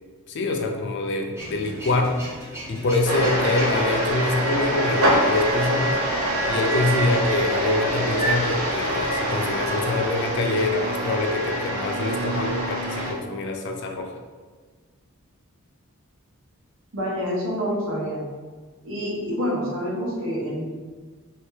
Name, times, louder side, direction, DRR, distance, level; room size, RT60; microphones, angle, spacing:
voice 1, 0.3-2.2 2.7-6.0 6.5-14.1, left 2 dB, 50° left, 3 dB, 0.4 m, -25 dB
Male speech man speaking / Vehicle / Engine starting, 1.3-7.2, right 1 dB, 10° right, 0.7 m, -41 dB
sound 1, 3.1-13.1, right 1 dB, 85° right, 0.8 m, -25 dB
voice 2, 16.9-18.2 18.8-20.6, equal, 60° right, -4 dB, 1.0 m, -27 dB
3.2 x 2.8 x 3.3 m, 1.4 s
head